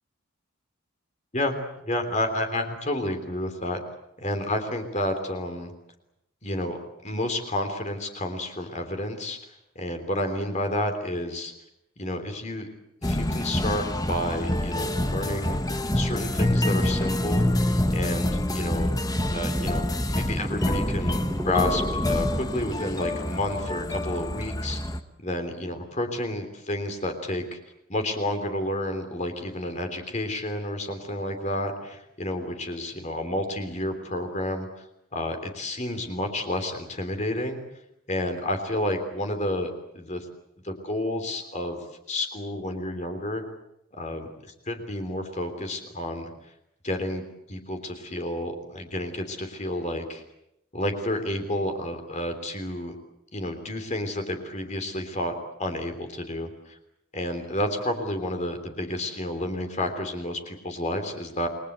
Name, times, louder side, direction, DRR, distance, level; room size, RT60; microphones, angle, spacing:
voice 1, 1.8-3.8 4.2-5.7 6.4-9.4 9.7-11.5 12.0-12.7 13.0-17.5 17.9-18.9 19.2-24.8 25.2-27.6 27.9-34.9 35.1-37.6 38.1-40.2 40.6-41.8 42.1-43.4 43.9-46.3 46.8-50.2 50.7-52.9 53.3-55.3 55.6-56.8 57.1-61.5, left 1 dB, 35° left, 6 dB, 3.3 m, -30 dB
sound 1, 13.0-25.0, left 1 dB, 15° left, 1.2 m, -26 dB
sound 2, 17.4-17.9 18.5-18.6 19.4-22.4, equal, 10° right, 1.3 m, -31 dB
29.0 x 21.5 x 8.1 m, 0.81 s
head